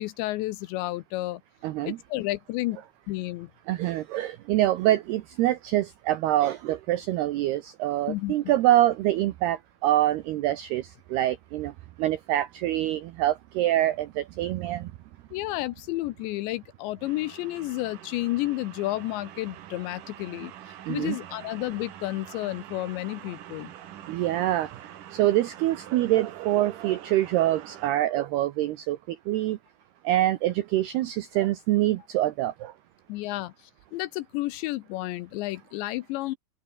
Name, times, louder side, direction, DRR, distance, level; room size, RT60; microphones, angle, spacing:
voice 1, 0.0-1.4 1.8-3.5 8.1-8.4 15.3-23.7 33.1-36.4, left 18 dB, 80° left, 2.6 m, -31 dB
voice 2, 1.6-2.0 3.7-11.7 12.0-14.9 20.9-21.2 24.1-24.7 25.1-29.6 30.0-32.7, right 14 dB, 90° right, 2.3 m, -25 dB
sound 1, 17.0-27.9, right 11 dB, 65° right, 2.1 m, -45 dB
open air
omnidirectional pair, 5.9 m